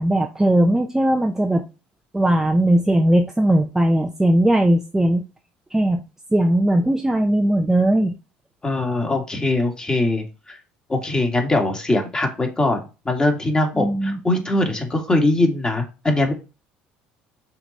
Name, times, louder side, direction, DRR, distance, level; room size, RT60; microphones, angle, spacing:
voice 1, 0.0-1.6 2.1-5.2 5.7-6.0 6.3-8.1 13.7-14.2, right 1 dB, 10° right, 0.7 m, -18 dB
voice 2, 8.6-10.6 10.9-16.3, left 2 dB, 20° left, 2.1 m, -21 dB
5.8 x 3.9 x 4.2 m
hypercardioid pair, 75°, 4 cm